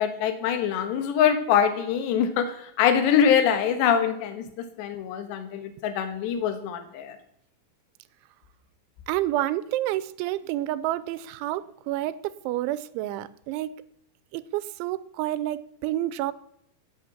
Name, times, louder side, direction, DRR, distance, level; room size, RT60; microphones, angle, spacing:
voice 1, 0.0-4.4 4.8-7.2, left 8 dB, 70° left, 8 dB, 3.4 m, -24 dB
voice 2, 9.1-13.7 14.3-16.3, right 14 dB, 85° right, 16 dB, 3.0 m, -29 dB
13.0 x 8.8 x 7.1 m, 0.75 s
omnidirectional pair, 5.4 m